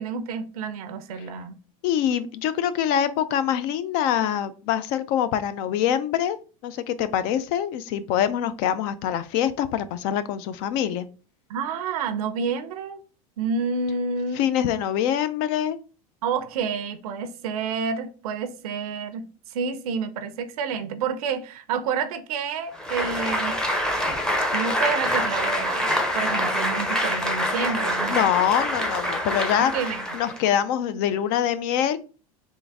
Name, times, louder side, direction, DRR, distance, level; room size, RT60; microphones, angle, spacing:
voice 1, 0.0-1.6 11.5-13.0 13.4-14.4 16.2-19.3 19.5-23.6 24.5-28.2 29.6-30.0, right 5 dB, 85° right, 0.6 m, -29 dB
voice 2, 1.8-6.4 6.6-11.1 14.3-15.8 28.1-29.7 30.1-32.0, left 10 dB, 60° left, 0.5 m, -24 dB
Applause, 22.7-30.5, equal, 5° left, 0.6 m, -26 dB
3.7 x 2.5 x 3.4 m
supercardioid pair, 120°, 18 cm